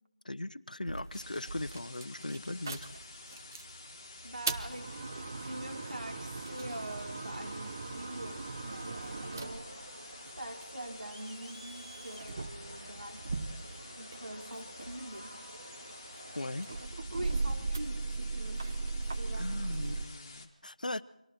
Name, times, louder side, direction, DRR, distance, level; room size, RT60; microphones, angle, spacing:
voice 1, 0.2-2.8 16.3-16.7 19.3-21.0, left 2 dB, 75° left, 14 dB, 0.9 m, -38 dB
sound 1, 0.9-3.7 4.2-11.0 11.7-14.4 14.7-20.1, right 3 dB, 25° right, 0.8 m, -38 dB
sound 2, 1.1-20.5, left 3 dB, 20° left, 1.5 m, -50 dB
voice 2, 4.2-9.7 10.4-13.5 14.0-15.4 17.1-18.7 19.1-19.5, right 1 dB, 85° right, 2 dB, 4.5 m, -44 dB
Crowd, 8.7-16.9, right 2 dB, 45° right, 2.3 m, -51 dB
29.5 x 24.5 x 4.4 m, 0.89 s
figure-of-eight pair, 170°, 4 cm